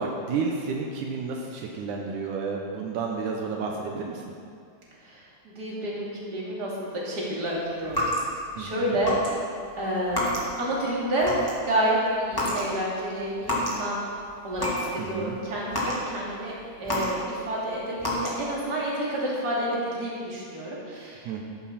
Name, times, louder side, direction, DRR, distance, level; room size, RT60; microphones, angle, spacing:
voice 1, 0.0-4.2 8.6-9.0 15.0-15.4 21.3-21.4, right 4 dB, 80° right, 0 dB, 2.5 m, -31 dB
voice 2, 5.0-8.0 8.6-9.2 9.8-10.3 10.6-14.0 14.4-16.5 16.8-21.4, right 1 dB, 30° right, -6 dB, 3.4 m, -29 dB
sound 1, 7.8-8.6 9.0-9.3 9.6-10.7 11.0-11.7 12.3-12.7 13.0-13.8 14.2-14.9 15.3-17.5 18.0-18.6, left 1 dB, 10° left, 2.3 m, -29 dB
13.5 x 13.5 x 4.3 m, 2.3 s
omnidirectional pair, 3.5 m